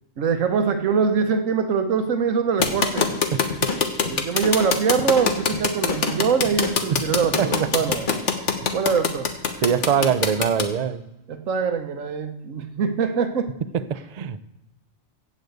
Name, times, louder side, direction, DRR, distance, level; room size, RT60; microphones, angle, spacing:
voice 1, 0.2-3.1 4.0-8.1 8.7-9.3 11.3-13.6, right 6 dB, 90° right, 8 dB, 1.4 m, -23 dB
sound 1, 2.6-10.6, left 6 dB, 65° left, 1.5 m, -22 dB
sound 2, 2.6-8.3, left 3 dB, 40° left, 1.3 m, -32 dB
voice 2, 9.6-11.0 13.9-14.5, right 7 dB, 45° right, 14 dB, 0.5 m, -22 dB
15.5 x 5.2 x 8.0 m, 0.92 s
omnidirectional pair, 1.3 m